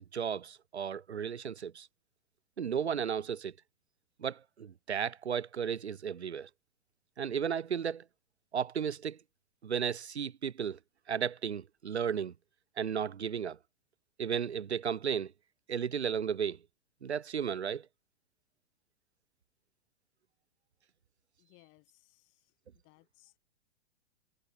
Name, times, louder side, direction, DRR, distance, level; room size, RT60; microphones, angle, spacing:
voice 1, 0.1-1.9 2.6-3.5 4.2-6.5 7.2-8.0 8.5-9.2 9.6-10.8 11.1-12.3 12.8-13.6 14.2-15.3 15.7-16.6 17.0-17.9, right 7 dB, 75° right, 0.9 m, -34 dB
voice 2, 21.4-22.5 22.8-23.4, left 26 dB, 35° left, 3.2 m, -64 dB
figure-of-eight pair, 105°, 33 cm